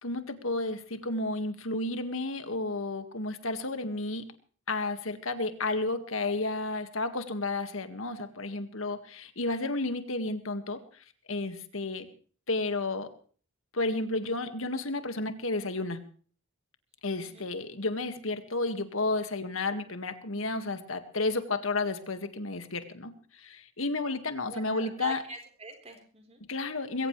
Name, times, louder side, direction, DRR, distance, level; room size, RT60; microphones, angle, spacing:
voice 1, 0.0-4.2 4.7-10.8 11.3-12.1 12.5-13.1 13.7-16.0 17.0-25.2 26.5-27.1, left 2 dB, 70° left, 8 dB, 2.0 m, -32 dB
voice 2, 24.5-26.4, right 3 dB, 30° right, 4 dB, 4.2 m, -44 dB
21.5 x 17.5 x 3.3 m, 0.43 s
head